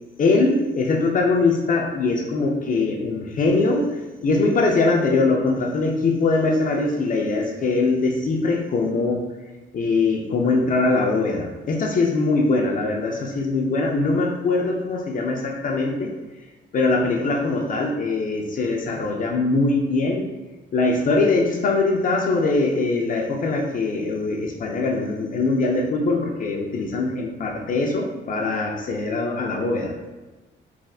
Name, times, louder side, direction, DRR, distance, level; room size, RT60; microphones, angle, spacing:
voice 1, 0.2-9.2 9.7-16.1 16.7-20.3 20.7-29.9, left 3 dB, 45° left, 1 dB, 0.4 m, -22 dB
3.3 x 2.5 x 2.3 m, 1.2 s
cardioid pair, 90°, 20 cm